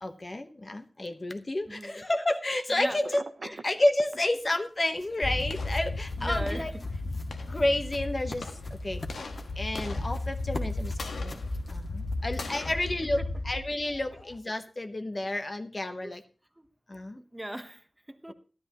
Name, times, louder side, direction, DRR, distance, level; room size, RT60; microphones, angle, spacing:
voice 1, 0.0-6.7 7.5-9.0 9.6-11.4 11.7-16.2 16.9-17.2, left 1 dB, 35° left, 1.1 m, -30 dB
voice 2, 1.7-2.0 2.7-3.0 3.4-3.6 6.2-7.0 13.2-13.3 16.0-16.1 16.6-16.7 17.2-18.3, right 1 dB, 10° right, 1.0 m, -39 dB
Telephone, 3.0-4.2, right 4 dB, 65° right, 0.8 m, -39 dB
sound 1, 4.2-12.7, left 2 dB, 50° left, 1.9 m, -47 dB
sound 2, 5.2-14.4, left 2 dB, 90° left, 1.4 m, -34 dB
13.5 x 12.5 x 3.0 m
wide cardioid pair, 95°, 0 cm